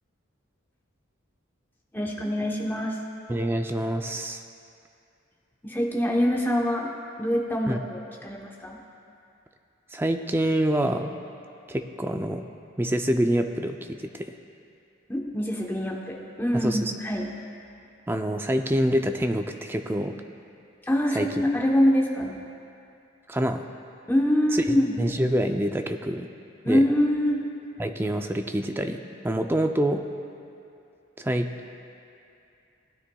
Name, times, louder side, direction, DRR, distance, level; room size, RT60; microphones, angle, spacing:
voice 1, 1.9-3.0 5.6-6.9 7.2-8.8 15.1-17.3 20.8-22.4 24.1-25.0 26.6-27.4, equal, 10° left, -1 dB, 0.9 m, -24 dB
voice 2, 3.3-4.4 7.7-7.8 9.9-11.1 11.7-12.4 12.8-14.3 16.5-16.9 18.1-20.2 21.1-21.3 23.3-23.6 24.7-26.3 26.6-26.8 27.8-30.0 31.2-31.5, right 1 dB, 10° right, 6 dB, 0.4 m, -26 dB
18.0 x 9.7 x 2.3 m, 2.6 s
head